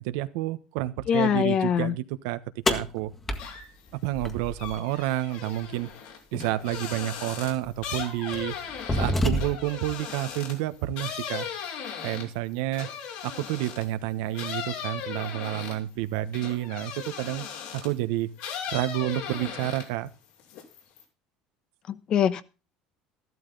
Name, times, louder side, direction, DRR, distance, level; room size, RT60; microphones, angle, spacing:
voice 1, 0.0-2.4 2.7-3.1 4.0-5.9 6.3-8.6 8.9-11.5 12.0-12.9 13.2-17.5 17.7-18.3 18.7-20.1, right 15 dB, 85° right, 12 dB, 1.2 m, -29 dB
voice 2, 1.1-1.9 21.9-22.4, left 9 dB, 35° left, 15 dB, 1.0 m, -23 dB
sound 1, 2.7-4.8 6.7-6.8 7.6-7.8 8.3-9.8, left 1 dB, 15° left, 1.7 m, -28 dB
sound 2, 3.3-3.9 4.2-13.9 14.3-18.0 18.4-20.1 20.4-21.0, left 7 dB, 75° left, 6.2 m, -37 dB
14.0 x 12.5 x 4.0 m, 0.31 s
cardioid pair, 160°, 2 cm